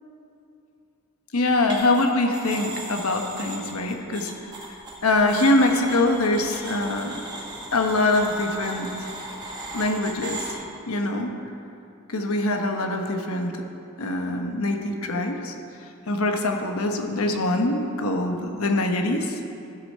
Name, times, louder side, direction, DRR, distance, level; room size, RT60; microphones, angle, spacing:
voice 1, 1.3-4.3 5.0-7.1 7.7-9.1 9.7-10.5 10.9-11.3 12.1-13.5 14.0-15.5 16.1-19.4, left 2 dB, 85° left, 4 dB, 1.1 m, -23 dB
sound 1, 1.7-2.0 2.3-10.5, right 2 dB, 20° right, 1.5 m, -37 dB
14.5 x 7.0 x 4.3 m, 2.8 s
head